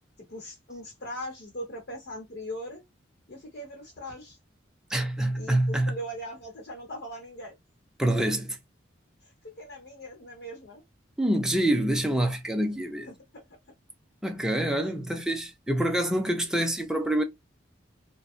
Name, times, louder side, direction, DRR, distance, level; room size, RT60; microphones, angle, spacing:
voice 1, 0.3-2.8 3.3-4.4 5.3-7.5 9.2-10.8 12.6-12.7 13.1-13.5 14.8-14.9, equal, 55° left, 0.9 m, -40 dB
voice 2, 4.9-5.9 8.0-8.6 11.2-13.1 14.2-17.2, right 1 dB, 5° right, 0.4 m, -26 dB
2.6 x 2.2 x 2.3 m
head